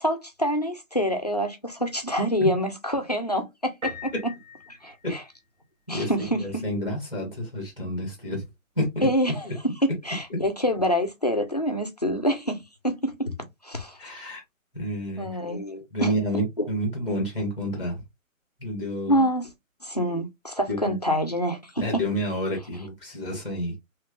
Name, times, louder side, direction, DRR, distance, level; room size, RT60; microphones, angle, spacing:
voice 1, 0.0-4.1 4.8-5.2 5.9-6.6 9.0-13.3 13.6-14.0 15.2-16.1 16.6-16.7 19.1-19.5 19.8-22.0, equal, 30° left, 0.4 m, -26 dB
Piano, 3.8-5.6, left 3 dB, 60° right, 1.2 m, -39 dB
voice 2, 6.4-8.4 8.8-9.1 9.4-9.5 14.0-14.4 14.7-15.3 15.9-18.0 18.6-19.2 20.7-20.9 21.8-23.7, equal, 5° right, 0.7 m, -29 dB
3.2 x 2.8 x 2.4 m
figure-of-eight pair, 150°, 41 cm